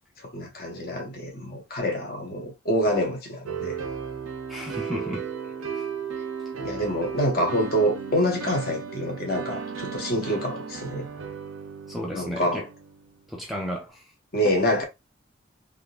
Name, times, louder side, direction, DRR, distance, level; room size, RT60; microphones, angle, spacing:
voice 1, 0.3-3.8 6.6-11.1 12.1-12.6 14.3-14.8, equal, 45° left, 1.0 m, -26 dB
sound 1, 3.5-13.2, right 6 dB, 85° right, 0.6 m, -35 dB
voice 2, 4.5-5.8 11.9-12.7 13.3-14.1 14.4-14.5, equal, ahead, 0.5 m, -34 dB
3.6 x 2.6 x 2.3 m
head